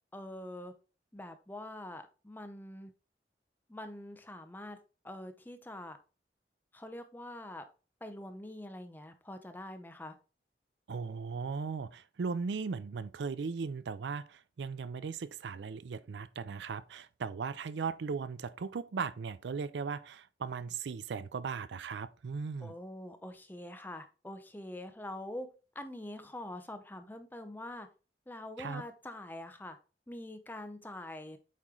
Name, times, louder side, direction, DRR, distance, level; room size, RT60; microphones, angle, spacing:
voice 1, 0.1-0.7 1.1-2.9 3.7-4.8 5.0-6.0 6.7-7.6 8.0-10.1 22.6-25.5 25.7-27.9 28.3-29.8 30.1-31.4, left 1 dB, 10° left, 0.6 m, -44 dB
voice 2, 10.9-22.7 28.6-28.8, right 5 dB, 85° right, 0.4 m, -37 dB
8.4 x 3.1 x 3.7 m
head